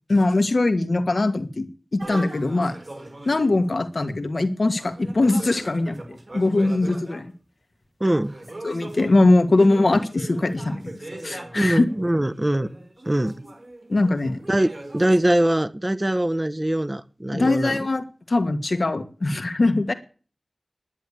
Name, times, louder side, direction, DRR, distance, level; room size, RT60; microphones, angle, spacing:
voice 1, 0.1-1.7 1.9-2.8 3.2-7.3 8.6-11.0 11.2-11.8 13.9-14.4 17.3-19.9, left 2 dB, 70° left, 8 dB, 1.7 m, -21 dB
sound 1, 2.0-3.8 4.8-7.3 8.1-15.2, right 1 dB, 55° right, 5.5 m, -40 dB
voice 2, 8.0-8.3 11.5-12.7 13.1-13.3 14.5-17.9, right 1 dB, 25° right, 14 dB, 0.8 m, -22 dB
10.5 x 10.5 x 8.4 m, 0.38 s
wide cardioid pair, 60°, 0 cm